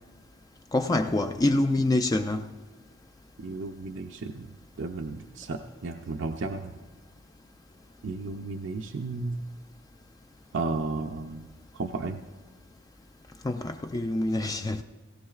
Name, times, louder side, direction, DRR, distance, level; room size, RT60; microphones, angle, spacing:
voice 1, 0.7-2.4 13.4-14.8, left 2 dB, 20° left, 0.3 m, -26 dB
voice 2, 3.4-4.5 4.8-6.7 8.0-9.4 10.5-11.5 11.7-12.2, right 3 dB, 60° right, 0.5 m, -33 dB
17.5 x 17.0 x 2.4 m
head